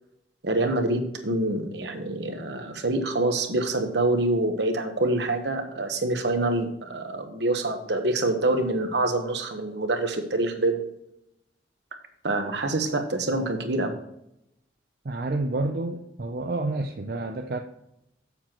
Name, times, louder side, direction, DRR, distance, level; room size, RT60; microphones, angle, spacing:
voice 1, 0.4-10.8 12.2-13.9, right 2 dB, 70° right, 6 dB, 1.2 m, -26 dB
voice 2, 15.0-17.6, right 2 dB, 55° right, 4 dB, 0.6 m, -29 dB
7.5 x 7.2 x 4.5 m, 0.81 s
head